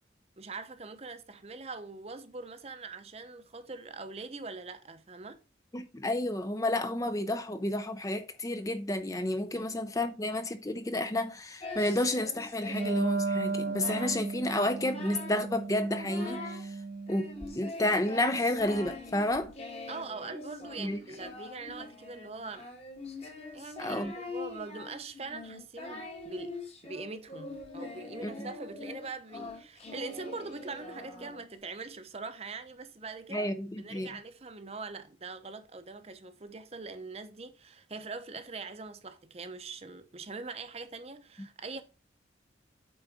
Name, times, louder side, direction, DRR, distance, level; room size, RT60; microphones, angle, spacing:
voice 1, 0.4-5.4 9.5-9.9 19.9-22.7 23.5-26.6 26.8-33.5 33.8-41.8, right 3 dB, 35° right, 0.7 m, -42 dB
voice 2, 5.7-16.7 17.1-17.3 17.6-19.5 20.8-21.0 23.8-24.1 28.2-28.5 33.3-34.1, left 1 dB, 20° left, 0.5 m, -31 dB
Singing, 11.6-13.1 13.5-14.3 14.6-15.4 15.8-16.6 17.1-31.6, left 2 dB, 35° left, 1.5 m, -43 dB
Wind instrument woodwind instrument, 12.6-17.7, right 4 dB, 65° right, 0.9 m, -35 dB
8.6 x 3.9 x 4.9 m
head